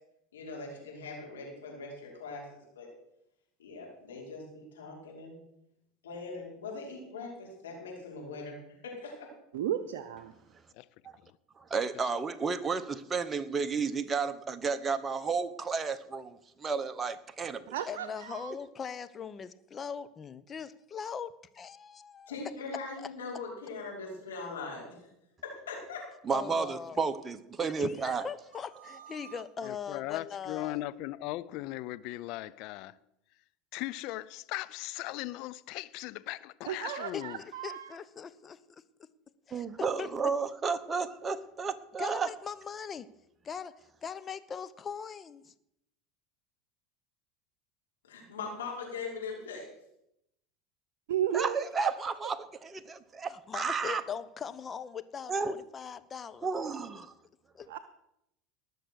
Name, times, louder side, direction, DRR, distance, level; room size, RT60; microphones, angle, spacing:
voice 1, 0.3-2.9 3.6-5.4 6.0-8.6 8.8-9.3 22.3-24.8 25.4-26.0 48.1-49.7, left 4 dB, 90° left, 5.6 m, -41 dB
voice 2, 9.5-10.3 17.7-18.5 28.8-29.4 36.7-37.9 51.1-51.9 57.7-57.8, right 10 dB, 75° right, 0.7 m, -34 dB
voice 3, 11.7-17.6 26.2-28.3 39.5-42.3 51.3-54.0 55.3-55.5 56.4-57.1, right 5 dB, 25° right, 1.2 m, -32 dB
voice 4, 17.9-22.4 23.0-23.1 26.3-27.0 27.6-30.8 37.1-38.8 39.5-40.3 42.0-43.1 43.4-45.5 53.3-56.5 57.5-57.7, left 6 dB, 30° left, 0.9 m, -41 dB
voice 5, 29.6-33.0 33.7-37.4, left 17 dB, 60° left, 0.6 m, -38 dB
19.5 x 6.6 x 6.4 m
hypercardioid pair, 85°, 0 cm